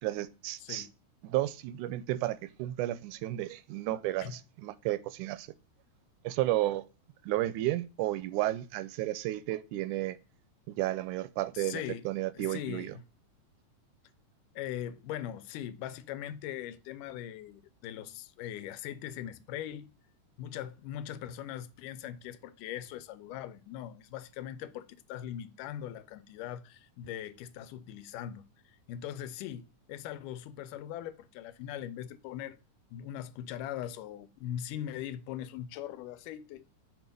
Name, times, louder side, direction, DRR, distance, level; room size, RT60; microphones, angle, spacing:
voice 1, 0.0-0.9 1.2-5.5 6.2-6.8 7.2-10.2 10.7-12.9, right 16 dB, 80° right, 1.9 m, -32 dB
voice 2, 0.6-0.9 4.2-4.4 11.5-12.1 12.3-13.0 14.6-19.9 20.4-32.6 32.9-36.6, left 11 dB, 85° left, 2.2 m, -40 dB
6.2 x 4.5 x 5.1 m
omnidirectional pair, 3.7 m